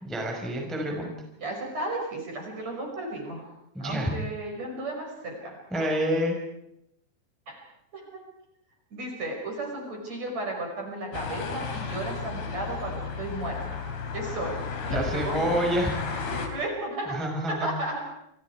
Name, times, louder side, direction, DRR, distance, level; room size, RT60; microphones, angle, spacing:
voice 1, 0.0-1.1 3.7-4.1 5.7-6.4 14.9-16.1 17.1-17.7, equal, ahead, 1 dB, 4.4 m, -28 dB
voice 2, 1.4-3.5 3.8-5.9 7.5-7.6 7.9-8.2 8.9-13.8 14.1-15.5 16.3-17.2 17.6-18.1, right 2 dB, 35° right, 1 dB, 6.5 m, -34 dB
sound 1, 11.1-16.5, left 5 dB, 60° left, 4.9 m, -33 dB
29.0 x 27.5 x 4.8 m, 0.79 s
omnidirectional pair, 5.4 m